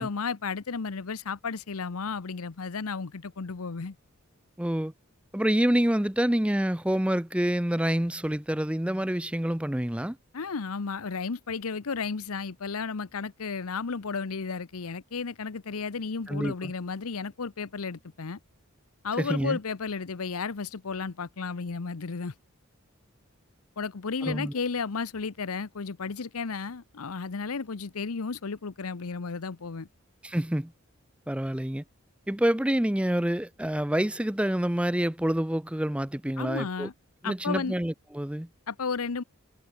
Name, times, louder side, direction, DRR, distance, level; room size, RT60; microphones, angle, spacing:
voice 1, 0.0-4.0 10.3-18.4 19.0-22.3 23.8-29.9 36.4-36.9 37.2-37.7 38.7-39.2, left 5 dB, 85° left, 0.8 m, -33 dB
voice 2, 4.6-4.9 5.3-10.2 16.3-16.7 19.2-19.6 24.2-24.5 30.2-30.7 31.3-31.8 32.3-36.9 37.2-38.5, right 1 dB, 5° right, 0.5 m, -27 dB
head